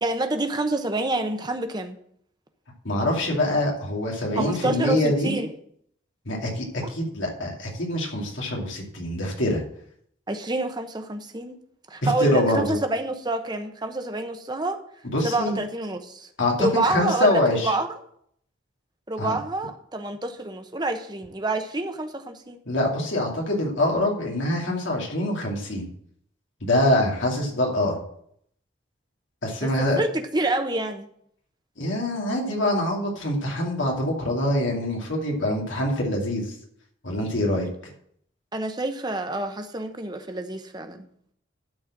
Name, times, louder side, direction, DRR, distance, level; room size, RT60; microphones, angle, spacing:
voice 1, 0.0-2.0 4.4-5.5 6.8-6.9 10.3-11.6 11.9-14.8 15.2-16.3 16.6-17.9 19.1-22.6 29.6-29.7 30.0-31.1 38.5-41.1, right 2 dB, 20° right, 7 dB, 0.9 m, -27 dB
voice 2, 2.8-5.3 6.3-9.6 12.0-12.8 15.1-15.6 16.4-17.8 19.2-19.3 22.7-25.9 26.6-28.0 29.4-30.0 31.8-36.5 37.0-37.7, left 1 dB, 85° left, -1 dB, 2.7 m, -24 dB
12.0 x 4.4 x 7.5 m, 0.68 s
head